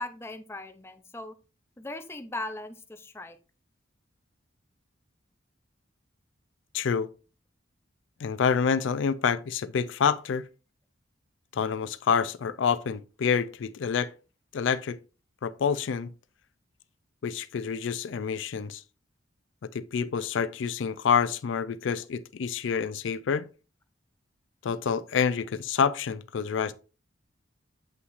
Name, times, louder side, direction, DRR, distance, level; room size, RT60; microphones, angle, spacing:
voice 1, 0.0-1.3 1.8-3.4, left 2 dB, 15° left, 0.5 m, -38 dB
voice 2, 6.7-7.1 8.2-10.4 11.5-14.1 14.5-15.0 15.4-16.1 17.2-18.8 19.6-23.5 24.6-26.7, left 6 dB, 75° left, 0.4 m, -27 dB
7.8 x 5.7 x 2.5 m
head